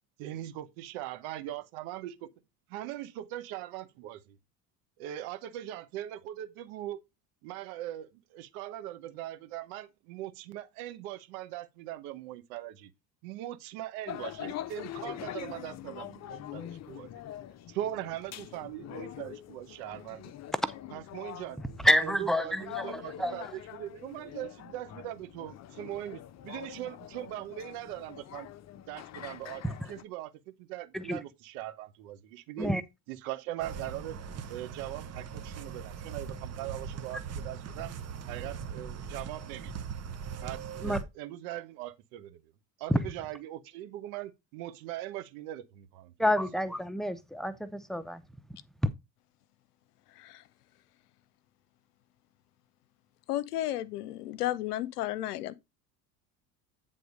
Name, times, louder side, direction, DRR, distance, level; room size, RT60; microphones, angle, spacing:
voice 1, 0.2-2.3 2.7-4.4 5.0-7.0 7.4-12.9 13.2-17.1 17.7-20.3 20.9-21.6 22.0-28.5 28.9-32.7 33.1-34.2 34.5-38.0 38.3-39.9 40.4-42.4 42.8-46.1, right 13 dB, 55° right, 1.1 m, -40 dB
sound 1, 14.1-30.0, left 12 dB, 30° left, 0.8 m, -44 dB
voice 2, 21.8-23.3 29.6-29.7 30.9-31.2 32.6-32.8 40.8-41.0 42.9-43.0 46.2-48.2, equal, ahead, 0.8 m, -28 dB
sound 2, 33.6-41.0, right 6 dB, 30° right, 1.0 m, -40 dB
voice 3, 50.1-50.4 53.3-55.5, left 14 dB, 65° left, 0.8 m, -33 dB
9.3 x 3.8 x 5.1 m
figure-of-eight pair, 65°, 50 cm